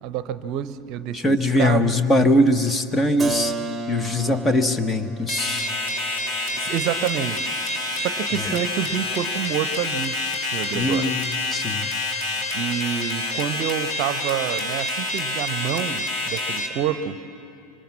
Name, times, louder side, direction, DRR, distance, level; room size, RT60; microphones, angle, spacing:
voice 1, 0.0-2.0 6.6-11.1 12.5-17.2, right 10 dB, 45° right, 13 dB, 0.8 m, -28 dB
voice 2, 1.1-3.5 3.9-5.7 10.7-11.9, left 1 dB, 20° left, 10 dB, 1.2 m, -21 dB
Keyboard (musical), 3.2-8.8, right 3 dB, 10° right, 1.5 m, -34 dB
sound 1, 5.3-16.7, left 2 dB, 45° left, 3.2 m, -27 dB
25.5 x 25.5 x 7.4 m, 2.6 s
figure-of-eight pair, 80°, 0 cm